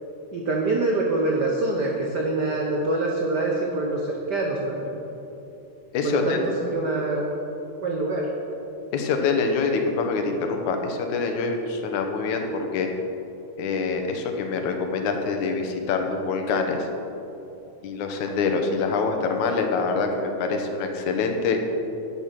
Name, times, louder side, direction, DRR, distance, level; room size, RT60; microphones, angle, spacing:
voice 1, 0.3-5.0 6.0-6.4 6.7-7.3 7.8-8.2, right 2 dB, 80° right, -1 dB, 0.9 m, -25 dB
voice 2, 5.9-6.5 8.9-12.9 13.6-16.9 17.8-21.6, left 4 dB, 85° left, 4 dB, 2.4 m, -25 dB
11.0 x 8.1 x 5.9 m, 2.9 s
omnidirectional pair, 3.4 m